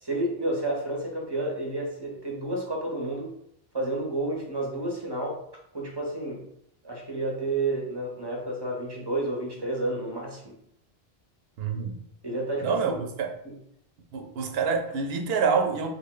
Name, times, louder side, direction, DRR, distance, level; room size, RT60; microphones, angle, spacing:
voice 1, 0.0-3.3 3.7-5.4 5.7-6.5 6.8-10.6 12.2-13.0, right 2 dB, 30° right, 0.7 m, -30 dB
voice 2, 11.6-12.0 12.6-13.4 14.1-15.9, right 5 dB, 80° right, 0.8 m, -27 dB
3.5 x 2.1 x 3.7 m
omnidirectional pair, 1.0 m